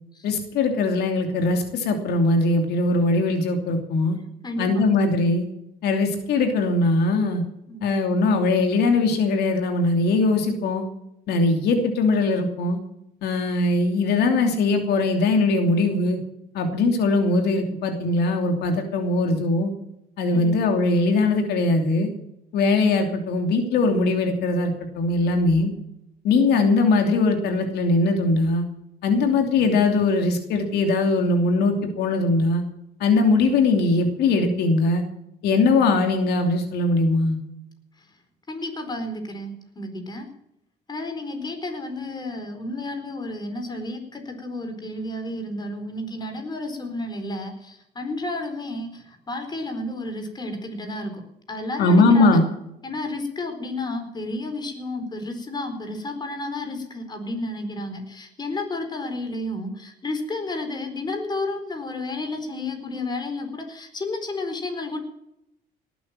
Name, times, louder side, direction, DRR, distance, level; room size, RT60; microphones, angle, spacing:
voice 1, 0.2-4.2 4.6-5.4 5.8-7.4 7.8-10.8 11.3-12.8 13.2-16.2 16.5-19.7 20.2-22.1 22.5-25.7 26.2-28.6 29.0-32.6 33.0-35.0 35.4-37.4 51.8-52.4, left 3 dB, 75° left, 4 dB, 2.8 m, -21 dB
voice 2, 4.4-4.9 7.7-7.9 20.3-20.5 38.5-40.3 40.9-51.2 51.5-52.4 52.8-65.0, left 2 dB, 25° left, 5 dB, 4.5 m, -31 dB
18.5 x 9.2 x 7.5 m, 0.80 s
cardioid pair, 110°, 17 cm